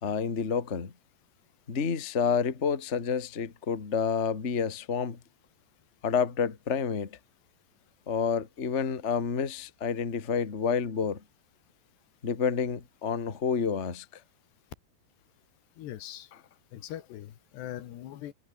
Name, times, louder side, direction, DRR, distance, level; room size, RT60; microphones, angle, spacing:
voice 1, 0.0-0.9 1.7-5.2 6.0-7.2 8.1-11.2 12.2-14.2, left 6 dB, 30° left, 1.2 m, -29 dB
voice 2, 15.8-16.3 16.7-18.3, left 12 dB, 90° left, 3.9 m, -41 dB
omnidirectional pair, 4.7 m